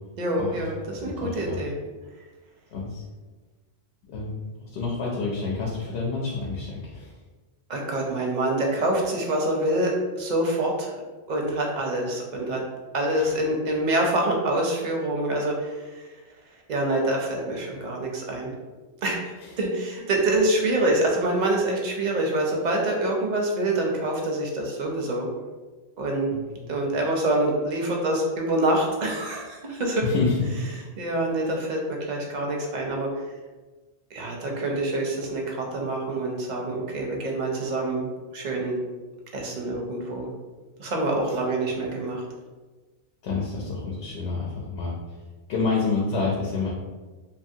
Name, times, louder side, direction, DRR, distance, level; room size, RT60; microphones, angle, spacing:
voice 1, 0.2-1.8 7.7-10.9 11.3-12.6 12.9-16.1 16.7-18.5 19.0-25.3 26.0-26.3 26.7-30.0 31.0-33.1 34.1-38.1 38.3-38.8 39.3-40.3 40.8-42.2, right 1 dB, 55° right, 0 dB, 0.5 m, -26 dB
voice 2, 0.9-1.6 2.7-3.0 4.1-7.1 13.2-13.3 19.4-19.5 26.3-26.7 30.0-30.6 43.2-45.0 45.5-46.7, left 4 dB, 80° left, -3 dB, 0.8 m, -28 dB
2.8 x 2.4 x 2.6 m, 1.3 s
omnidirectional pair, 1.1 m